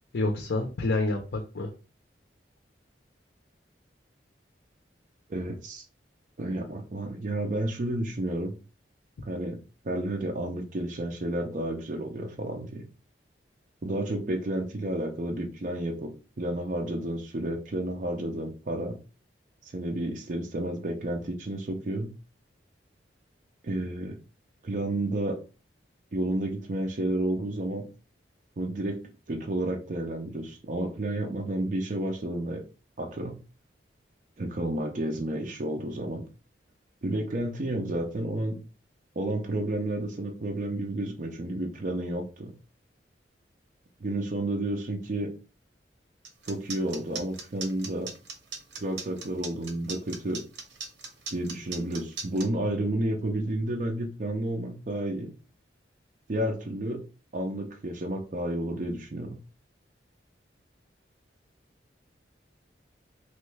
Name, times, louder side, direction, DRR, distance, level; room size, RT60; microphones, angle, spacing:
voice 1, 0.1-1.7, left 2 dB, 70° left, 2 dB, 0.5 m, -28 dB
voice 2, 5.3-5.8 6.4-8.5 9.3-9.6 9.8-12.9 13.8-19.0 19.6-22.1 23.6-24.2 24.6-25.4 26.1-27.9 28.6-29.0 29.3-32.6 33.0-33.4 34.4-36.2 37.0-38.6 39.2-42.5 44.0-45.3 46.5-48.1 48.7-50.4 51.3-55.3 56.3-57.1 57.3-59.4, right 1 dB, 45° right, 2 dB, 0.5 m, -31 dB
sound 1, 46.2-52.5, right 5 dB, 85° right, 0.7 m, -38 dB
3.0 x 2.2 x 3.1 m, 0.33 s
head